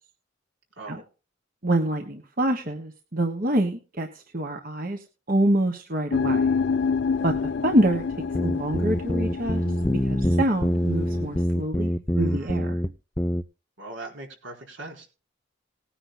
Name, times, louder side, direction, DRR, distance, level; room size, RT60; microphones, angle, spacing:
voice 1, 0.8-1.1 12.2-12.6 13.8-15.1, right 2 dB, 80° right, 1 dB, 4.2 m, -40 dB
voice 2, 1.6-5.0 5.3-6.5 7.2-7.4 7.6-8.0 8.4-9.6 10.0-12.8, right 1 dB, 45° right, 4 dB, 1.3 m, -26 dB
sound 1, 6.1-11.4, left 5 dB, 60° left, 0.5 m, -28 dB
sound 2, 8.3-12.9 13.2-13.4, equal, 10° left, 0.5 m, -25 dB
19.5 x 9.9 x 2.2 m, 0.34 s
head